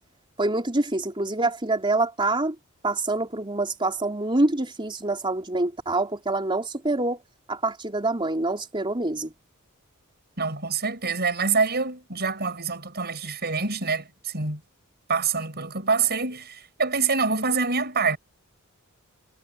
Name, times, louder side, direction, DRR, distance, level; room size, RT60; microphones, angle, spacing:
voice 1, 0.4-2.6 2.8-7.2 7.5-9.3, right 2 dB, 25° right, 4.0 m, -26 dB
voice 2, 10.4-14.6 15.1-18.2, right 4 dB, 50° right, 6.8 m, -26 dB
head